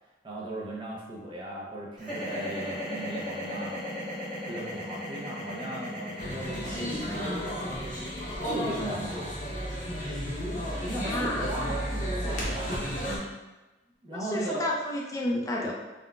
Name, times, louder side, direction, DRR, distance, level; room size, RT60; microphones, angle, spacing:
voice 1, 0.2-7.7 8.4-9.3 10.8-12.9 14.0-14.7, right 1 dB, 25° right, -4 dB, 0.6 m, -37 dB
sound 1, 2.0-12.1, left 1 dB, 5° right, 1.1 m, -37 dB
sound 2, 6.2-13.2, equal, 45° left, 0.7 m, -33 dB
voice 2, 10.9-11.5 14.1-15.7, left 1 dB, 20° left, -1 dB, 0.3 m, -31 dB
3.6 x 2.2 x 2.3 m, 1.1 s
head